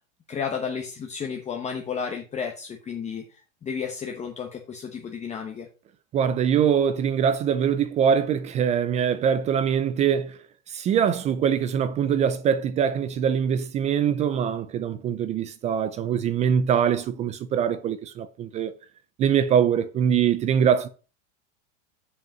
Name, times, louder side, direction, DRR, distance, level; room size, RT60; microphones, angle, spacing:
voice 1, 0.3-5.7, left 6 dB, 20° left, 1.0 m, -32 dB
voice 2, 6.1-10.4 10.7-18.7 19.2-20.9, right 8 dB, 20° right, 0.3 m, -23 dB
7.9 x 5.3 x 5.4 m
supercardioid pair, 140°, 37 cm